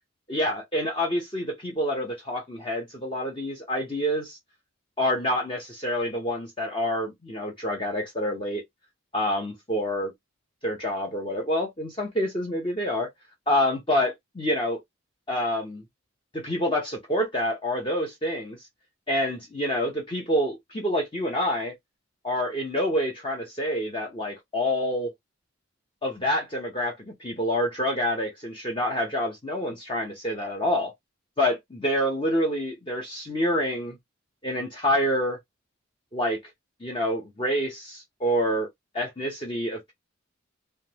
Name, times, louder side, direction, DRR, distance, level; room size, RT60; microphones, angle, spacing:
voice 1, 0.3-4.4 5.0-8.6 9.1-10.1 10.6-13.1 13.5-14.8 15.3-15.8 16.3-18.6 19.1-21.7 22.2-25.1 26.0-30.9 31.4-34.0 34.4-35.4 36.1-36.4 36.8-38.7 38.9-39.9, equal, 25° left, 0.7 m, -27 dB
3.5 x 2.2 x 2.9 m
head